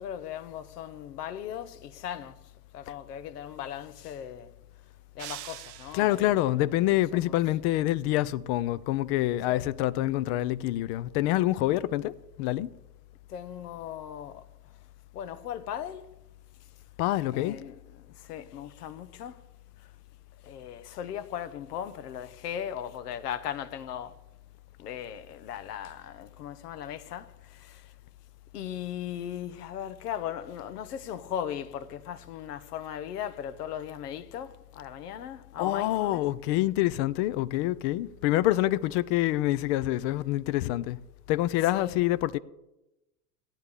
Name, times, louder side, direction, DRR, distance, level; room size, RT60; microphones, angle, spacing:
voice 1, 0.0-2.4 2.7-4.5 5.1-6.3 7.1-7.3 9.5-9.7 13.3-14.5 15.1-16.1 17.3-17.8 18.2-19.4 20.4-24.1 24.8-27.9 28.5-36.2 41.7-42.0, left 10 dB, 80° left, 0.9 m, -38 dB
sound 1, 5.2-6.4, right 15 dB, 45° right, 0.6 m, -43 dB
voice 2, 5.9-12.1 12.4-12.7 17.0-17.6 35.6-41.0 41.3-42.4, left 15 dB, 45° left, 0.5 m, -26 dB
17.5 x 9.9 x 3.5 m
hypercardioid pair, 105°, 46 cm